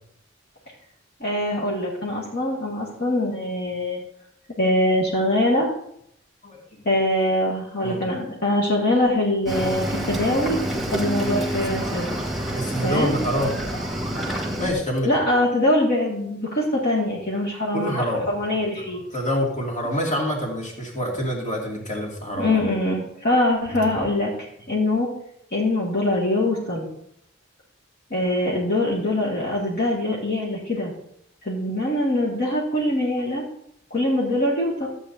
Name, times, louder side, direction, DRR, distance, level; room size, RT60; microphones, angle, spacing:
voice 1, 1.2-4.0 4.5-5.7 6.8-10.6 10.9-12.2 12.8-13.2 15.0-19.0 22.4-24.3 24.7-25.1 25.5-26.9 28.1-30.9 31.4-33.4 33.9-34.9, left 1 dB, 55° left, -6 dB, 2.3 m, -23 dB
voice 2, 6.4-7.1 7.8-8.1 12.5-14.3 14.6-15.2 17.7-18.3 19.1-22.6 23.7-23.8, equal, 35° left, -3 dB, 2.8 m, -27 dB
Cricket / Waves surf, 9.5-14.7, right 1 dB, ahead, 1.9 m, -28 dB
14.5 x 8.5 x 2.8 m, 0.72 s
head